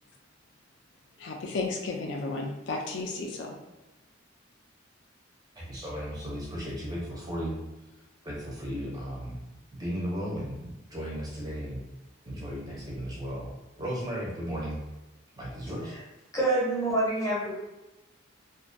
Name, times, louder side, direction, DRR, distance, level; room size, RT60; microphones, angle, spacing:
voice 1, 1.2-3.6, left 3 dB, 65° left, 1 dB, 0.3 m, -33 dB
voice 2, 5.6-7.6 8.2-9.4 9.8-11.8 12.2-13.5 13.8-14.8 15.4-16.0, equal, 20° right, -4 dB, 0.5 m, -35 dB
voice 3, 16.3-17.5, right 2 dB, 15° left, -6 dB, 0.7 m, -26 dB
2.3 x 2.1 x 2.5 m, 1.0 s
head